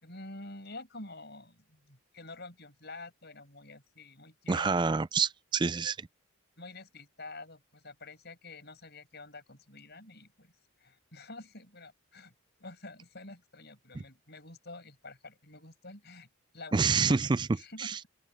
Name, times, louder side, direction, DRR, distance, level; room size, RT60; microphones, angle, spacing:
voice 1, 0.0-4.7 6.6-12.3 12.6-16.3 16.5-18.1, left 2 dB, 50° left, 5.9 m, -48 dB
voice 2, 4.5-6.1 13.9-14.0 16.7-17.5 17.8-18.0, right 4 dB, 20° right, 0.3 m, -27 dB
open air
head